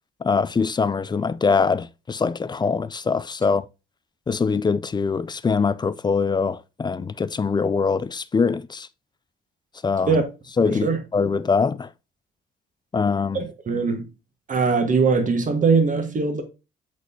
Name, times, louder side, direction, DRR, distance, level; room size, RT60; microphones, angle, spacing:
voice 1, 0.2-3.7 4.3-8.9 9.8-10.2 10.6-10.9 11.1-11.9 12.9-13.4, left 5 dB, 20° left, 0.4 m, -23 dB
voice 2, 10.6-11.0 13.3-14.0 14.5-16.4, right 4 dB, 40° right, 1.5 m, -21 dB
8.1 x 4.2 x 2.7 m
cardioid pair, 90°, 20 cm